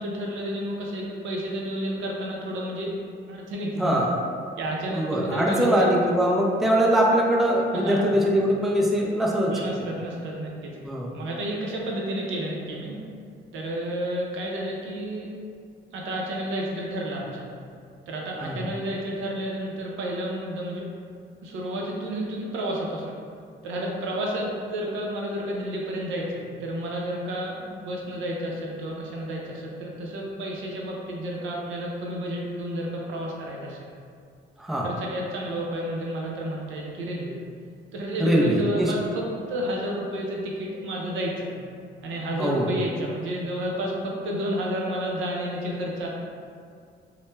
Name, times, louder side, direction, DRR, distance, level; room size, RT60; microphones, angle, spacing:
voice 1, 0.0-2.9 3.3-4.0 4.6-5.9 7.7-8.1 9.5-10.7 11.1-13.0 13.5-15.3 15.9-17.5 18.1-20.9 21.4-23.1 23.6-33.9 34.8-37.4 37.9-41.5 42.0-46.1, equal, 80° right, -2 dB, 0.5 m, -31 dB
voice 2, 3.8-4.1 4.9-9.5 10.8-11.1 18.4-18.7 34.6-34.9 38.2-38.9 42.4-42.7, right 1 dB, ahead, -3 dB, 0.3 m, -22 dB
2.1 x 2.1 x 3.1 m, 2.3 s
cardioid pair, 90°, 20 cm